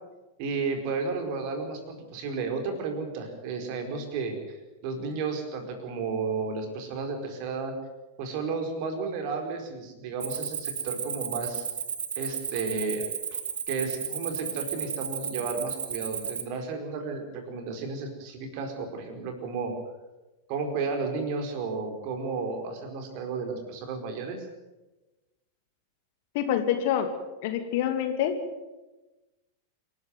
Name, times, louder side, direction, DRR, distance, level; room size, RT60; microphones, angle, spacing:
voice 1, 0.4-7.7 8.2-11.7 12.2-13.4 13.7-19.7 20.5-24.5, right 4 dB, 45° right, 5 dB, 4.6 m, -33 dB
Cricket, 10.2-16.4, right 7 dB, 65° right, 1.8 m, -34 dB
voice 2, 26.3-27.1 27.4-28.4, left 10 dB, 50° left, 7 dB, 2.6 m, -26 dB
27.5 x 12.0 x 9.5 m, 1.1 s
figure-of-eight pair, 90°, 0 cm